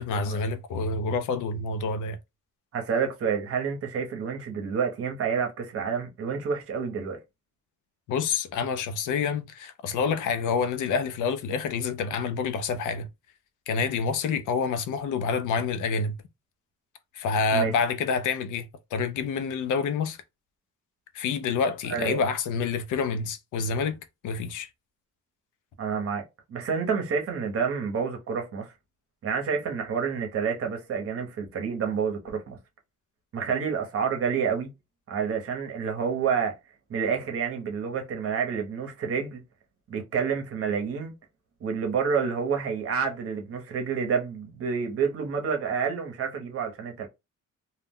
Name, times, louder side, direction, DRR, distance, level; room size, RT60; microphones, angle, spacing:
voice 1, 0.0-2.2 8.1-13.1 13.7-16.2 17.1-20.2 21.1-24.0 24.2-24.7, left 5 dB, 80° left, 0.5 m, -27 dB
voice 2, 2.7-7.2 17.5-17.7 21.9-22.2 25.8-26.2 26.5-28.7 29.2-32.6 33.3-34.7 35.1-36.6 36.9-39.4 39.9-41.1 41.6-47.1, right 6 dB, 45° right, 0.8 m, -29 dB
2.3 x 2.1 x 3.5 m
cardioid pair, 155°, 31 cm